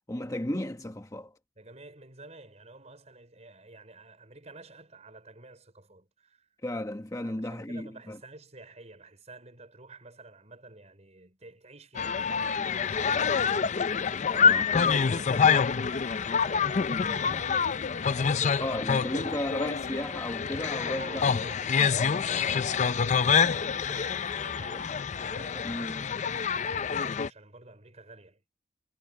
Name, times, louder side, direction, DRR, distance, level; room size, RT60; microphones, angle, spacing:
voice 1, 0.1-1.3 6.6-8.2 14.3-14.8 18.6-21.3 25.6-26.0, left 1 dB, 20° left, 1.2 m, -34 dB
voice 2, 1.6-6.5 7.2-13.8 14.4-19.3 20.9-25.9 26.5-28.4, right 2 dB, 40° right, 5.4 m, -50 dB
sound 1, 11.9-27.3, left 6 dB, 40° left, 0.5 m, -27 dB
head